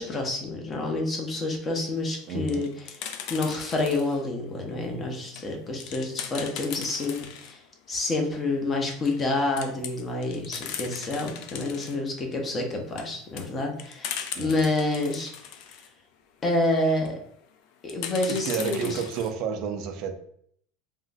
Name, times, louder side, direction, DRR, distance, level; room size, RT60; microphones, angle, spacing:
voice 1, 0.0-2.7 3.3-7.6 7.9-15.3 16.4-17.2 17.8-19.0, left 2 dB, 25° left, 2 dB, 0.7 m, -28 dB
sound 1, 2.2-4.2 4.8-7.6 7.9-8.0 8.3-8.4 8.8-9.3 9.5-12.0 12.6-15.9 16.8-17.2 17.9-19.3, left 8 dB, 60° left, 0.4 m, -39 dB
voice 2, 2.3-2.7 14.3-14.7 18.3-20.1, right 6 dB, 55° right, 7 dB, 0.4 m, -31 dB
3.6 x 2.0 x 2.6 m, 0.65 s
supercardioid pair, 125°, 0 cm